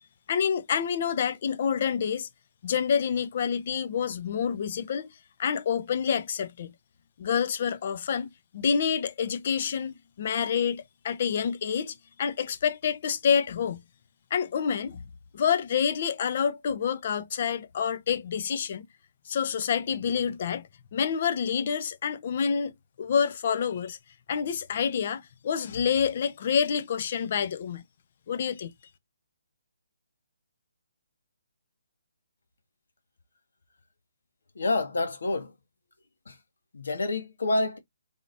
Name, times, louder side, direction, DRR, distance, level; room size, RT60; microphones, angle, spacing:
voice 1, 0.3-2.3 2.6-5.1 5.4-6.7 7.2-13.8 14.3-15.0 15.3-18.9 19.3-24.0 24.3-27.8 28.3-28.7, left 7 dB, 45° left, 0.7 m, -28 dB
voice 2, 34.5-35.5 36.2-36.4 36.7-37.8, left 2 dB, 70° left, 1.4 m, -28 dB
3.7 x 3.6 x 2.5 m
figure-of-eight pair, 145°, 0 cm